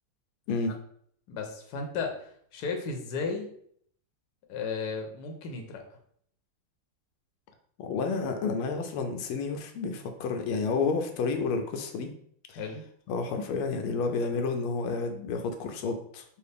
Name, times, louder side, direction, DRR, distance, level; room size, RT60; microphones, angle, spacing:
voice 1, 1.3-3.5 4.5-5.8 12.5-12.8, left 4 dB, 65° left, 2 dB, 1.1 m, -34 dB
voice 2, 7.8-12.1 12.5-12.6 13.1-16.2, left 4 dB, 85° left, 5 dB, 1.4 m, -30 dB
4.7 x 2.5 x 3.3 m, 0.64 s
omnidirectional pair, 2.3 m